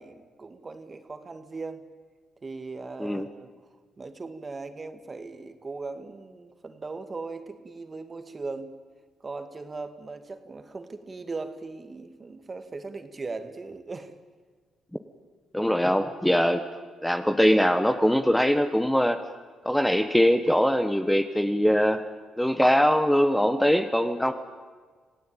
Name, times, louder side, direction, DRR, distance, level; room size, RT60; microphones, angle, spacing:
voice 1, 0.0-1.8 2.4-3.5 4.0-8.7 9.2-14.1, right 3 dB, 30° right, 9 dB, 2.2 m, -38 dB
voice 2, 15.5-16.6 17.0-19.2 19.6-22.0 22.4-24.3, equal, 5° left, 8 dB, 1.3 m, -22 dB
26.5 x 17.0 x 9.1 m, 1.5 s
cardioid pair, 90°, 0 cm